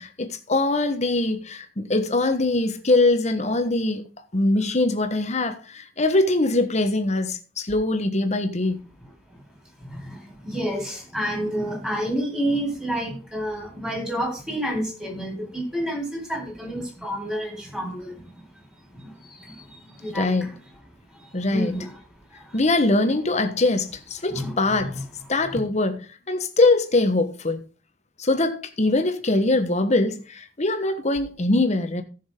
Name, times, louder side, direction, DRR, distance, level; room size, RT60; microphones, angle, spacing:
voice 1, 0.0-4.1 4.3-8.8 20.1-20.5 21.3-21.8 22.5-25.0 25.3-27.6 28.2-32.0, left 2 dB, 40° left, 1.2 m, -22 dB
voice 2, 10.4-18.1 19.0-19.1 20.0-20.5 21.5-21.9 23.0-23.1 24.3-25.0, equal, 5° right, 4.2 m, -29 dB
15.0 x 6.4 x 3.7 m
head